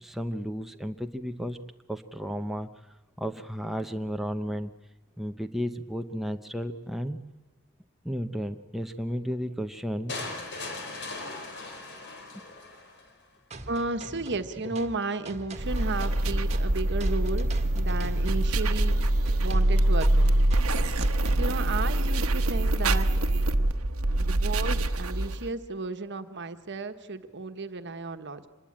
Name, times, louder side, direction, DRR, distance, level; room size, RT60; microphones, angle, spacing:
voice 1, 0.0-1.6 1.9-2.7 3.2-4.7 5.2-7.2 8.0-10.5, equal, ahead, 5 dB, 0.8 m, -33 dB
sound 1, 10.1-13.1, left 3 dB, 55° left, 4.4 m, -38 dB
sound 2, 13.5-21.5, right 2 dB, 30° right, 1.7 m, -44 dB
voice 2, 13.7-19.0 19.4-20.3 20.9-23.1 24.2-28.5, right 3 dB, 55° right, 9 dB, 1.4 m, -33 dB
sound 3, 15.6-25.5, right 1 dB, 75° right, 1.1 m, -24 dB
25.5 x 20.5 x 8.9 m, 1.1 s
head